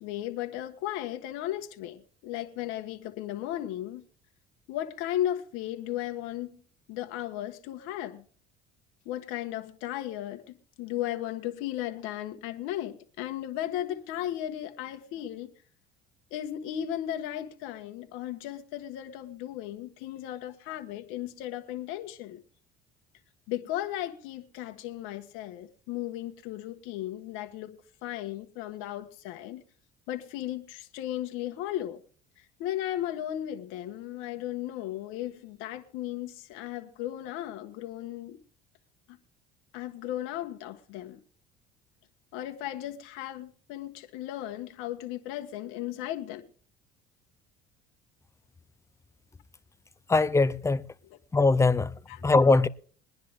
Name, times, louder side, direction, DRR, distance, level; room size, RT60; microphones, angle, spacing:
voice 1, 0.0-4.0 4.7-6.6 6.9-8.2 9.0-15.5 16.3-22.4 23.5-29.6 30.1-32.0 32.6-38.4 39.7-41.2 42.3-46.4 52.1-52.2, left 12 dB, 80° left, 1.6 m, -35 dB
voice 2, 50.1-50.8 51.3-51.9 52.2-52.7, left 3 dB, 15° left, 0.7 m, -21 dB
21.5 x 10.5 x 3.5 m
cardioid pair, 110°, 20 cm